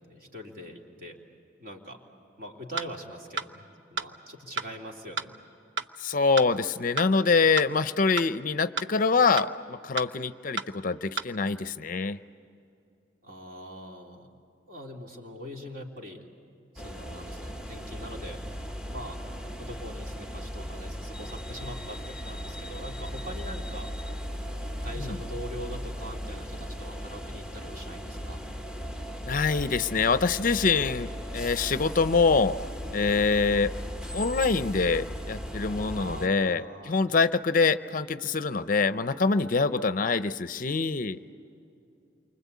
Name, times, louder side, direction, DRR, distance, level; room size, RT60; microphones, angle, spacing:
voice 1, 0.1-1.2 1.6-2.0 2.4-5.3 13.2-14.3 14.7-16.2 16.7-18.4 18.6-19.2 19.6-23.9 24.3-28.5 35.9-37.3, equal, 50° right, 0 dB, 3.3 m, -42 dB
sound 1, 2.8-2.9 3.4-3.5 4.0-4.1 4.6-4.7 5.2-5.3 5.8-5.9 6.4-6.5 7.0-7.1 7.6-7.7 8.2-8.3 8.8-8.9 9.4-9.5 10.0-10.1 10.6-10.7 11.2-11.3, right 5 dB, 75° right, 0.8 m, -31 dB
voice 2, 6.0-12.2 25.0-25.2 29.2-32.6 32.9-33.7 34.1-41.2, left 4 dB, 45° left, 12 dB, 0.6 m, -25 dB
sound 2, 16.8-36.3, equal, 5° right, 0.9 m, -37 dB
29.0 x 24.5 x 8.4 m, 2.6 s
head